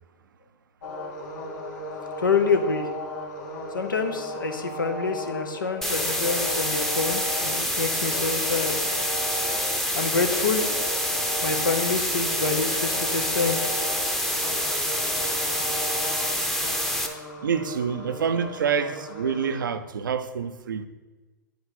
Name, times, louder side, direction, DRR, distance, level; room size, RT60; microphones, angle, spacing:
sound 1, 0.8-19.7, equal, 65° left, 1.7 m, -36 dB
voice 1, 2.2-2.9 3.7-8.8 9.9-10.7 11.1-13.6, left 4 dB, 90° left, 0.9 m, -27 dB
sound 2, 5.8-17.1, equal, 5° left, 0.7 m, -27 dB
voice 2, 17.4-20.9, right 7 dB, 80° right, 0.5 m, -27 dB
9.1 x 4.8 x 4.1 m
hypercardioid pair, 105°, 11 cm